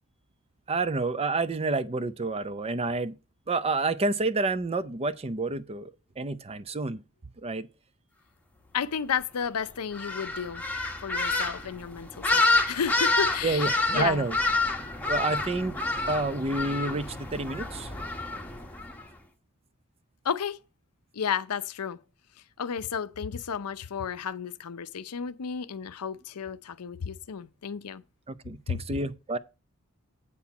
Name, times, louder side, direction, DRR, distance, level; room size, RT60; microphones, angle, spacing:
voice 1, 0.7-3.1 3.5-5.9 6.2-7.0 7.4-7.7 13.4-14.3 15.1-15.7 16.1-17.9 28.3-29.4, right 3 dB, 25° right, 0.5 m, -29 dB
voice 2, 8.7-10.6 11.0-14.3 20.2-20.6 21.1-22.0 22.6-28.0 28.7-28.8, left 7 dB, 85° left, 0.6 m, -32 dB
sound 1, 9.9-19.0, left 3 dB, 5° left, 1.1 m, -28 dB
8.4 x 4.3 x 6.8 m
head